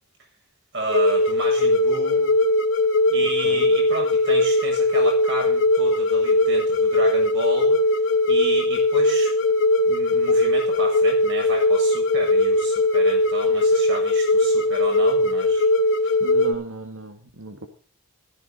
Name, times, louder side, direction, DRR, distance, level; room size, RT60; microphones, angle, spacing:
voice 1, 0.7-2.3 3.1-7.8 8.3-9.3 9.9-15.7, right 1 dB, 55° right, 1 dB, 7.4 m, -32 dB
sound 1, 0.9-16.5, left 2 dB, 60° left, 2.3 m, -20 dB
voice 2, 3.2-3.7 16.2-17.7, right 2 dB, 70° right, 5 dB, 1.8 m, -37 dB
15.5 x 13.5 x 4.0 m, 0.41 s
head